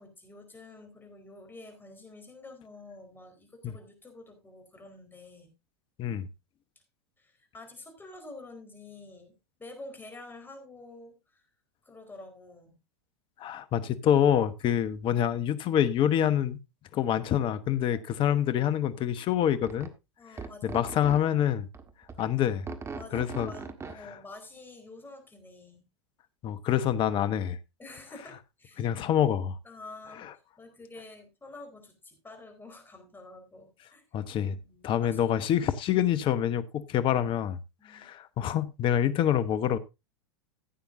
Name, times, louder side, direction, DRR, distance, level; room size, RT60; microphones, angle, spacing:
voice 1, 0.0-5.5 7.2-11.5 11.8-12.8 17.9-18.2 20.2-21.0 22.9-25.8 27.8-28.8 29.6-30.2 30.6-34.0 34.6-35.2 37.8-38.0, left 2 dB, 15° left, 4.4 m, -48 dB
voice 2, 13.4-16.6 16.9-19.9 20.6-21.7 22.2-22.7 23.1-23.5 26.4-27.6 28.8-29.5 30.2-30.3 34.1-34.6 34.8-37.6 37.9-39.8, left 10 dB, 35° left, 1.1 m, -26 dB
sound 1, 19.7-19.9 20.4-21.2 21.7-22.2 22.7-24.0, right 4 dB, 20° right, 1.6 m, -39 dB
15.5 x 9.0 x 2.7 m
hypercardioid pair, 100°, 14 cm